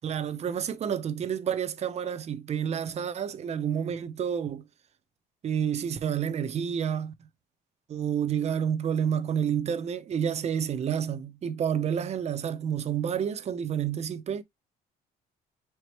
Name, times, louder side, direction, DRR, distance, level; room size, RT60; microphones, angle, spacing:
voice 1, 0.0-4.6 5.4-7.1 7.9-14.4, right 8 dB, 40° right, 0.6 m, -29 dB
4.6 x 2.9 x 3.0 m
cardioid pair, 110°, 17 cm